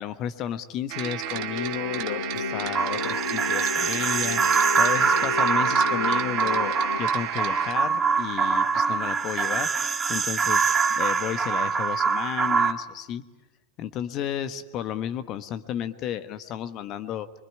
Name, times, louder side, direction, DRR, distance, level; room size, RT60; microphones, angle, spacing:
voice 1, 0.0-13.2 13.8-17.3, left 10 dB, 35° left, 12 dB, 1.2 m, -33 dB
sound 1, 0.9-7.7, right 14 dB, 40° right, 1.6 m, -33 dB
sound 2, 1.3-7.0, left 6 dB, 65° left, 1.2 m, -33 dB
sound 3, 2.7-12.7, right 5 dB, 20° right, 1.6 m, -24 dB
25.0 x 23.5 x 9.8 m, 1.1 s
figure-of-eight pair, 90°, 0 cm